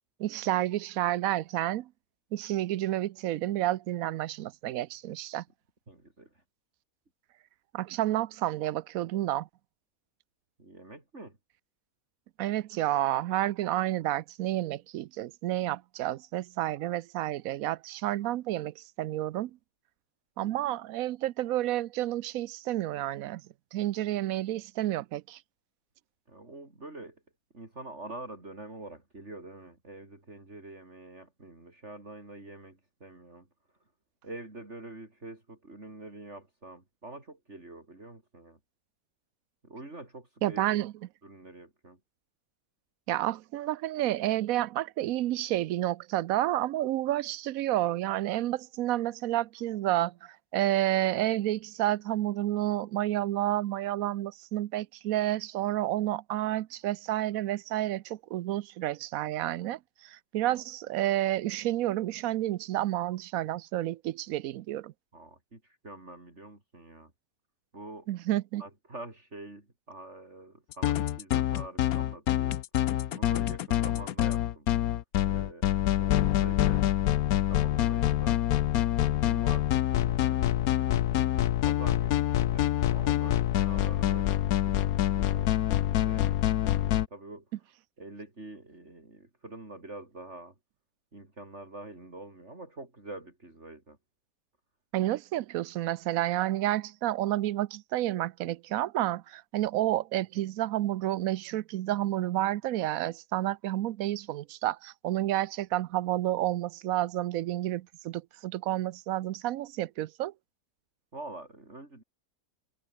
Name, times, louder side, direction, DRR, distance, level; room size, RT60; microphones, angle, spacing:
voice 1, 0.2-1.9 2.3-5.4 7.7-9.5 12.4-19.5 20.4-23.4 23.7-25.4 40.4-40.9 43.1-64.9 68.1-68.6 94.9-110.3, right 14 dB, 70° right, 1.0 m, -30 dB
voice 2, 5.9-6.4 10.6-11.4 20.4-20.6 26.3-27.2 27.5-33.5 34.2-38.6 39.6-40.6 41.2-42.0 60.4-60.6 65.1-67.1 67.7-68.1 68.6-72.6 73.1-74.7 75.2-76.9 77.5-78.4 79.1-81.4 81.6-87.4 88.0-90.5 91.1-94.0 111.1-112.0, right 2 dB, 45° right, 5.0 m, -46 dB
sound 1, 70.7-87.1, left 12 dB, 75° left, 1.2 m, -26 dB
omnidirectional pair, 1.6 m